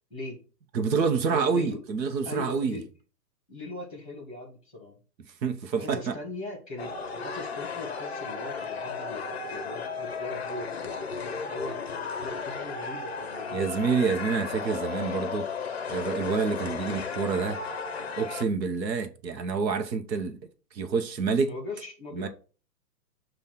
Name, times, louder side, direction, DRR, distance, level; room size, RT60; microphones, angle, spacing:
voice 1, 0.1-0.4 1.3-1.8 2.2-2.8 3.5-5.0 5.7-11.8 12.2-13.7 21.4-22.3, left 2 dB, 5° right, 1.1 m, -40 dB
voice 2, 0.7-2.8 5.4-6.1 13.5-15.5 15.9-17.6 18.2-20.4 20.7-21.5 22.1-22.3, right 5 dB, 85° right, 1.2 m, -27 dB
sound 1, 6.8-18.4, left 5 dB, 40° left, 0.5 m, -34 dB
7.1 x 2.7 x 5.7 m
hypercardioid pair, 180°, 50 cm